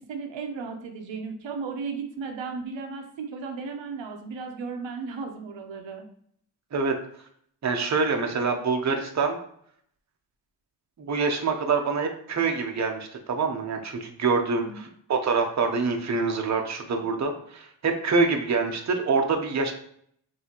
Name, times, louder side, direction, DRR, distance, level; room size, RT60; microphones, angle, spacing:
voice 1, 0.0-6.0 14.6-14.8, right 5 dB, 85° right, 4 dB, 0.8 m, -35 dB
voice 2, 7.6-9.4 11.0-19.7, right 4 dB, 40° right, 4 dB, 0.7 m, -25 dB
5.6 x 2.7 x 2.9 m, 0.65 s
cardioid pair, 80°, 44 cm